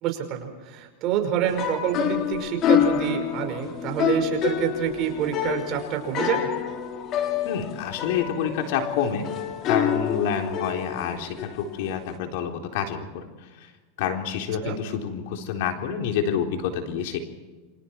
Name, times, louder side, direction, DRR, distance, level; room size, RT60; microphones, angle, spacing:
voice 1, 0.0-6.5 14.6-14.8, right 9 dB, 45° right, 4 dB, 5.2 m, -27 dB
sound 1, 1.4-12.2, left 9 dB, 40° left, 3.1 m, -27 dB
voice 2, 7.5-9.3 9.6-13.3 13.6-13.7 14.0-17.2, left 8 dB, 70° left, 4 dB, 3.9 m, -28 dB
28.5 x 25.0 x 4.7 m, 1.3 s
supercardioid pair, 125°, 0 cm